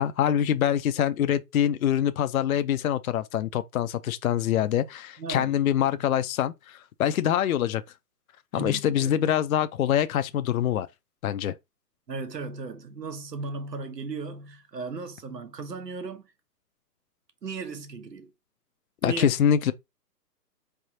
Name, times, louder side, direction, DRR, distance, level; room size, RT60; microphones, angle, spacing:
voice 1, 0.0-7.8 8.5-10.9 11.2-11.5 19.0-19.7, left 10 dB, 60° left, 0.5 m, -25 dB
voice 2, 5.2-5.5 8.5-9.1 12.1-16.3 17.4-18.3 19.0-19.3, right 4 dB, 85° right, 1.1 m, -36 dB
4.6 x 3.4 x 2.7 m
figure-of-eight pair, 135°, 48 cm